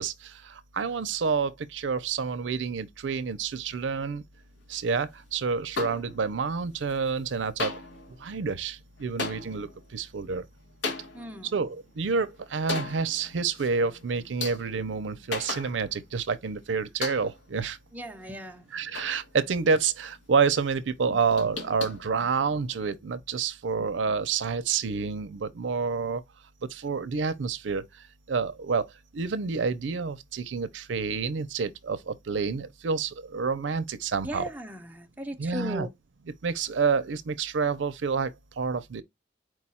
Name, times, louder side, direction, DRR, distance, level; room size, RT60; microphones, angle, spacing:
voice 1, 0.0-4.2 4.7-7.7 8.2-10.4 11.4-17.8 18.7-26.2 26.7-27.8 28.3-28.9 29.1-34.5 35.4-35.9 36.4-39.0, right 5 dB, 85° right, 0.5 m, -28 dB
sound 1, 5.7-6.5 6.8-7.3 7.6-16.2 16.5-16.6 17.0-17.6 18.0-19.7 20.0-20.5 20.9-22.8, left 3 dB, 80° left, 1.2 m, -38 dB
voice 2, 11.1-11.5 17.9-18.6 34.2-35.9, right 1 dB, 10° right, 0.6 m, -37 dB
4.6 x 2.3 x 4.1 m
head